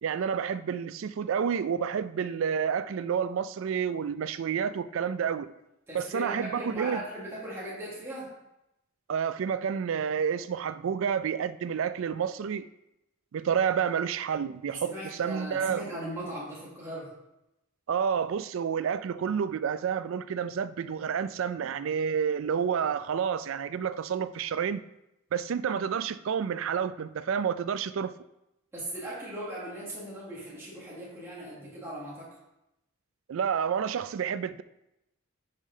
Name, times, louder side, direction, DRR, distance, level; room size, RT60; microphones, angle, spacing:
voice 1, 0.0-5.5 5.9-7.0 9.1-12.7 13.3-15.8 17.9-24.8 25.3-28.1 33.3-34.6, right 7 dB, 70° right, 0.3 m, -29 dB
voice 2, 5.9-8.3 14.8-17.1 28.7-32.3, right 1 dB, 10° right, 1.5 m, -38 dB
5.6 x 5.0 x 5.4 m
head